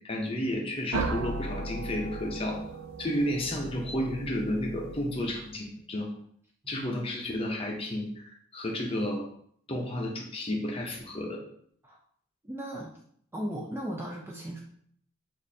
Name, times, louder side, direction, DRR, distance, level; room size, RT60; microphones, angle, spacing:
voice 1, 0.0-2.6 3.0-6.2 6.7-9.3 9.7-11.4, left 1 dB, 25° left, 1 dB, 0.6 m, -32 dB
sound 1, 0.9-5.6, right 3 dB, 85° right, 0.4 m, -37 dB
voice 2, 12.4-13.0 13.3-14.6, equal, 10° right, -2 dB, 0.3 m, -37 dB
6.1 x 2.6 x 2.7 m, 0.65 s
head